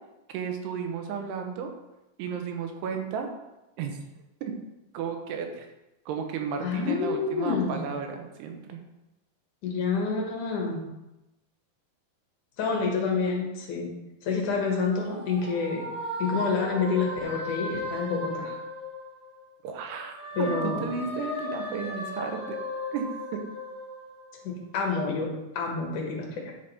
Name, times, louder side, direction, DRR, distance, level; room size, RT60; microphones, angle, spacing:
voice 1, 0.3-1.7 2.2-3.3 3.8-4.0 4.4-4.5 4.9-5.7 6.1-8.8 19.6-22.6 22.9-23.1 23.3-23.4, right 6 dB, 85° right, 4 dB, 3.0 m, -33 dB
voice 2, 6.6-7.8 9.6-10.8 12.6-14.0 14.2-15.9 16.2-18.6 20.3-20.8 24.4-26.5, left 4 dB, 60° left, 0 dB, 2.5 m, -28 dB
sound 1, 14.5-19.5 19.9-24.6, left 1 dB, 40° right, 2.6 m, -36 dB
10.0 x 5.0 x 4.2 m, 0.95 s
omnidirectional pair, 4.6 m